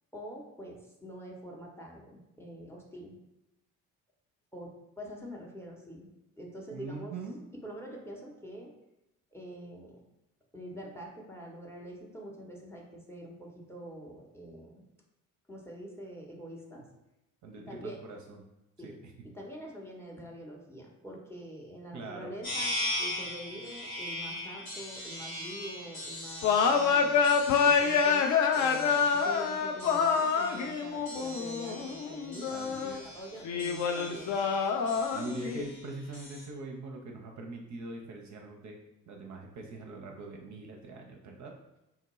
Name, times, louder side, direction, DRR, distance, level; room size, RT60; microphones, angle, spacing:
voice 1, 0.1-3.1 4.5-6.1 6.4-7.1 7.6-8.7 9.3-10.0 10.5-14.8 15.5-16.8 17.5-18.0 18.8-18.9 19.2-27.2 27.6-34.5, equal, 5° left, -1 dB, 0.7 m, -45 dB
voice 2, 6.7-7.4 17.4-18.4 18.8-18.9 21.9-22.4 32.5-33.1 35.1-38.8 39.1-41.5, right 2 dB, 45° right, 1 dB, 0.6 m, -42 dB
sound 1, 22.4-36.4, left 1 dB, 85° left, 1.3 m, -40 dB
sound 2, 26.4-33.0 33.4-35.6, left 6 dB, 45° left, 0.4 m, -27 dB
3.6 x 2.1 x 3.0 m, 0.91 s
figure-of-eight pair, 45°, 42 cm